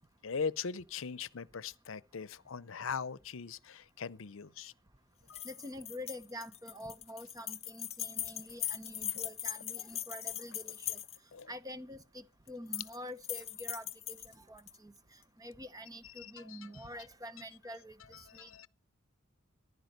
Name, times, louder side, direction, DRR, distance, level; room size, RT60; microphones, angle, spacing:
voice 1, 0.2-4.7 5.3-5.5 11.3-11.5 16.0-16.8 18.1-18.7, left 5 dB, 75° left, 0.7 m, -40 dB
sound 1, 5.3-11.4 12.5-13.0 13.2-14.8, left 10 dB, 30° left, 1.0 m, -40 dB
voice 2, 5.4-11.0 11.5-14.9 15.4-17.9 18.3-18.5, equal, 20° right, 0.9 m, -46 dB
15.0 x 11.0 x 6.6 m
head